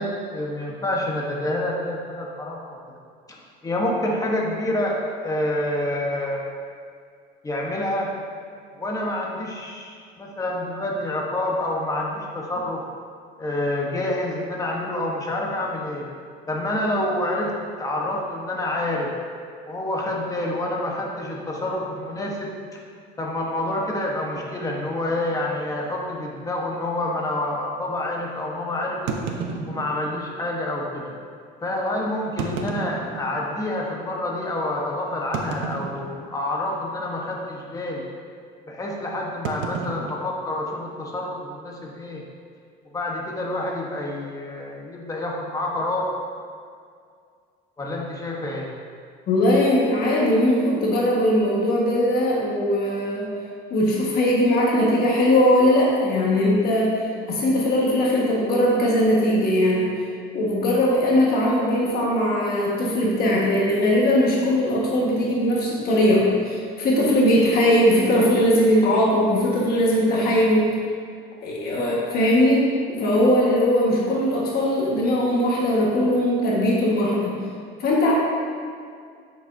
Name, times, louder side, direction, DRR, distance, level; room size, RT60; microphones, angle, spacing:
voice 1, 0.0-2.8 3.3-5.0 5.2-6.4 7.4-8.1 8.7-12.8 13.4-16.1 16.5-19.1 19.7-22.8 23.2-29.1 29.7-31.1 31.6-38.1 38.7-42.2 42.9-46.1 47.8-48.7, left 1 dB, 15° left, -2 dB, 1.1 m, -28 dB
sound 1, 24.3-24.5 25.3-25.4 25.7-25.8 26.4-26.5 29.1-30.3 31.1-31.2 32.2-33.7 34.2-34.3 35.3-36.4 36.7-37.1 37.3-37.6 39.4-41.1, right 5 dB, 85° right, 0.8 m, -32 dB
voice 2, 49.3-53.3 53.7-57.0 57.3-59.9 60.3-70.7 71.4-77.4 77.8-78.1, left 1 dB, 50° left, -4 dB, 1.5 m, -20 dB
8.1 x 6.9 x 2.7 m, 2.2 s
cardioid pair, 145°, 20 cm